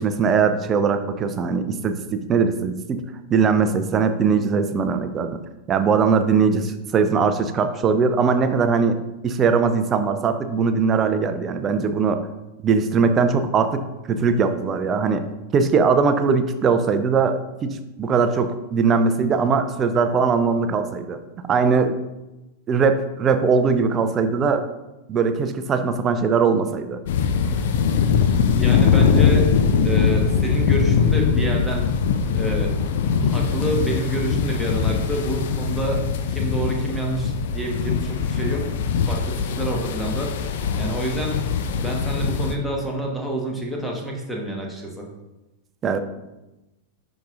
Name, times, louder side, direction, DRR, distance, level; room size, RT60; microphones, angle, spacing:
voice 1, 0.0-3.0 3.3-5.4 5.7-9.0 9.2-12.2 12.6-15.2 15.5-21.2 21.5-22.0 22.7-24.6 25.1-27.0 45.8-46.0, right 5 dB, 25° right, 9 dB, 0.6 m, -20 dB
sound 1, 27.1-42.5, left 6 dB, 55° left, 0.6 m, -21 dB
voice 2, 28.5-29.6 29.8-31.9 32.3-32.8 33.2-36.0 36.3-38.7 39.1-40.3 40.8-41.4 41.7-45.0, right 1 dB, ahead, -1 dB, 1.4 m, -28 dB
10.0 x 5.0 x 2.5 m, 0.99 s
figure-of-eight pair, 90°, 0 cm